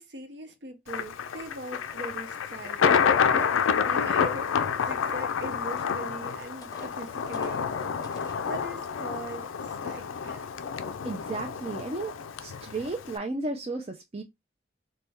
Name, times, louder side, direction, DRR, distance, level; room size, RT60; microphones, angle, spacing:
voice 1, 0.0-10.5, right 1 dB, 55° right, 0.8 m, -41 dB
Thunder, 0.9-13.2, left 7 dB, 80° left, 0.4 m, -28 dB
sound 1, 6.6-8.5 9.1-9.2 9.7-10.0, left 2 dB, 20° left, 0.6 m, -48 dB
voice 2, 11.0-12.1 12.4-14.2, right 2 dB, 30° right, 0.4 m, -33 dB
4.0 x 2.2 x 3.4 m
head